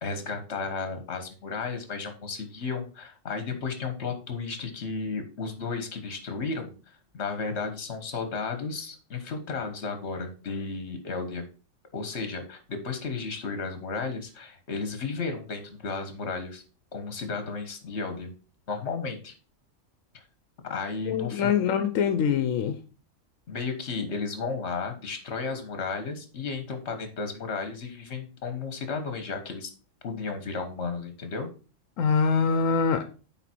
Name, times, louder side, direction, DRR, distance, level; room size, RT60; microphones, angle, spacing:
voice 1, 0.0-6.7 7.1-11.4 11.9-16.6 16.9-18.3 18.7-19.3 20.7-21.5 23.5-29.7 30.0-31.5, left 4 dB, 60° left, 1.6 m, -33 dB
voice 2, 21.1-22.8 32.0-33.1, left 6 dB, 90° left, 1.1 m, -24 dB
9.1 x 3.8 x 4.5 m
omnidirectional pair, 1.3 m